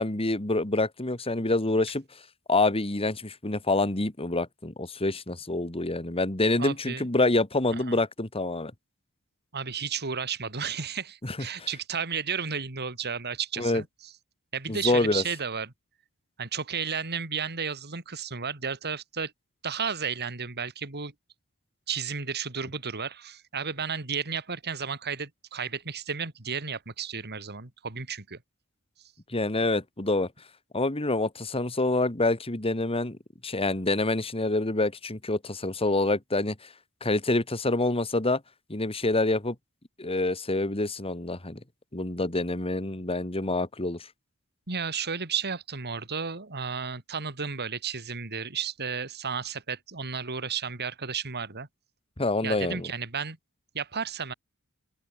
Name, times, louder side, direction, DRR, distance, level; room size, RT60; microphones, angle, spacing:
voice 1, 0.0-2.0 2.5-8.7 11.2-11.7 13.6-13.8 14.7-15.2 29.3-30.3 30.7-33.2 33.4-36.6 37.0-38.4 38.7-39.6 40.0-41.6 41.9-44.1 52.2-52.9, left 2 dB, 25° left, 2.1 m, -26 dB
voice 2, 6.6-7.1 7.7-8.0 9.5-13.9 14.5-15.7 16.4-19.3 19.6-21.1 21.9-28.4 44.7-51.7 52.4-53.4 53.7-54.3, right 6 dB, 50° right, 2.9 m, -33 dB
open air
head